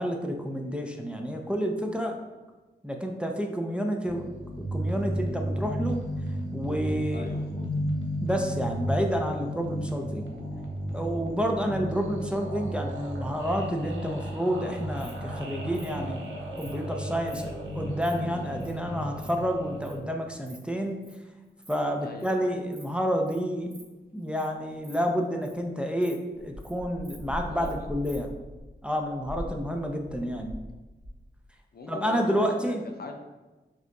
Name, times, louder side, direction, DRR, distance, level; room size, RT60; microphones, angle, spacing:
voice 1, 0.0-2.2 2.8-4.3 4.6-6.0 6.5-7.3 8.2-10.3 10.9-16.3 16.6-21.0 21.7-23.7 24.1-28.3 28.8-30.5 31.9-32.8, equal, 5° right, 2 dB, 0.5 m, -29 dB
sound 1, 4.0-20.0, equal, 85° right, 0.7 m, -33 dB
voice 2, 7.1-7.7 22.0-22.3 27.5-27.9 31.7-33.1, left 3 dB, 55° left, 3 dB, 0.5 m, -41 dB
Insect, 14.7-15.1 15.7-15.9 16.6-16.7 17.2-17.4 17.8-18.1 18.6-18.7 19.0-19.3 19.8-20.0 20.3-20.6 20.8-21.1 21.5-21.7 22.0-22.3 22.7-22.9 23.3-23.4 23.7-23.8 24.2-24.5 24.7-25.6 26.0-26.1 26.4-26.7 27.0-27.7 28.0-28.2, right 1 dB, 50° right, 1.1 m, -51 dB
sound 2, 26.4-30.7 31.0-31.4, left 1 dB, 15° left, 1.0 m, -40 dB
4.9 x 2.9 x 2.3 m, 1.2 s
cardioid pair, 40°, 19 cm